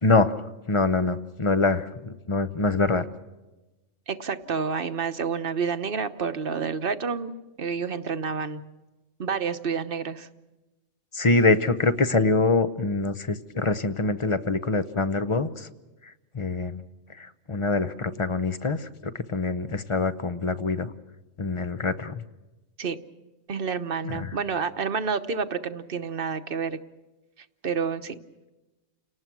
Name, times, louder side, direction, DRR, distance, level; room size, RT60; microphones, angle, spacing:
voice 1, 0.0-3.0 11.1-15.7 16.3-16.8 17.2-20.9 21.4-22.2 24.0-24.3, left 3 dB, 30° left, 12 dB, 0.8 m, -24 dB
voice 2, 4.1-7.3 7.6-8.6 9.2-10.3 22.8-23.0 23.5-26.8 27.6-28.2, right 5 dB, 45° right, 9 dB, 1.1 m, -29 dB
30.0 x 19.0 x 6.2 m, 1.1 s
omnidirectional pair, 1.3 m